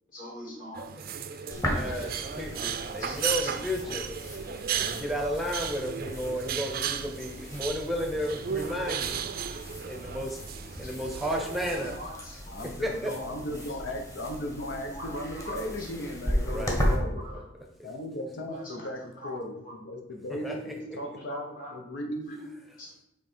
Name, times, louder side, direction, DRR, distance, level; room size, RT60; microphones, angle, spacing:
voice 1, 0.1-0.8 2.8-4.0 9.5-9.6 10.5-11.0 12.0-12.6 14.6-15.1 15.4-15.9 16.8-17.4 18.3-18.9 19.2-19.3 19.6-19.8 20.6-20.9 21.3-21.7 22.3-22.5 22.8-22.9, equal, 50° left, -4 dB, 2.6 m, -43 dB
sound 1, 0.7-12.0, right 8 dB, 50° right, 0.4 m, -35 dB
voice 2, 1.0-9.2 9.9-10.4 10.8-12.0 12.8-13.1 16.4-16.8 20.3-21.0, equal, ahead, 1 dB, 0.7 m, -33 dB
sound 2, 1.5-17.0, equal, 15° left, 1.2 m, -36 dB
voice 3, 12.5-17.2 17.8-20.6 20.9-22.4, left 1 dB, 90° left, 2 dB, 0.9 m, -36 dB
8.4 x 3.2 x 4.4 m, 0.87 s
head